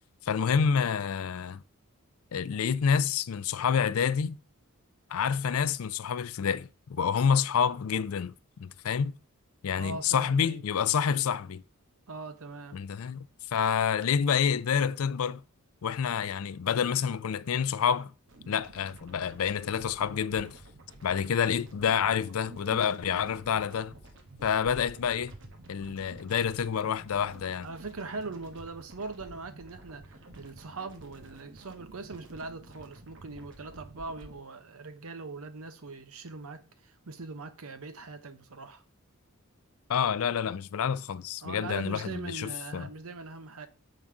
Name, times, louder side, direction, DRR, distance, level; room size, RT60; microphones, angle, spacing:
voice 1, 0.2-1.6 2.3-4.4 5.1-8.3 8.6-9.2 9.6-11.6 12.7-13.2 13.5-15.4 15.8-18.1 18.5-20.6 21.0-23.9 24.4-25.3 25.7-27.7 39.9-42.9, left 7 dB, 75° left, 0.4 m, -28 dB
voice 2, 9.7-10.6 12.1-12.8 27.6-38.8 41.4-43.7, right 3 dB, 75° right, 0.8 m, -41 dB
sound 1, 18.3-34.4, right 1 dB, 55° right, 1.2 m, -51 dB
7.1 x 3.8 x 4.8 m
head